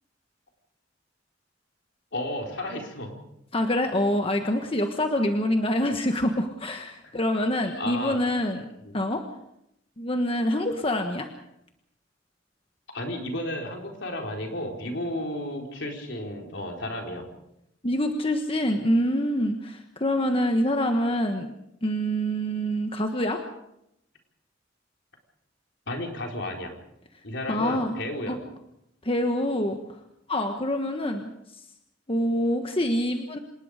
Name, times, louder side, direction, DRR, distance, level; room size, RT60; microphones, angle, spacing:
voice 1, 2.1-3.2 7.8-8.2 8.8-9.0 12.9-17.2 25.9-26.7 27.2-28.4, left 1 dB, 70° left, 2 dB, 4.4 m, -33 dB
voice 2, 3.5-8.6 8.9-9.2 10.0-11.3 17.8-21.5 21.8-23.4 27.5-28.0 28.3-28.4 29.0-29.8 30.3-31.3 32.1-33.4, equal, 30° left, 5 dB, 1.4 m, -25 dB
26.5 x 19.5 x 5.1 m, 0.81 s
head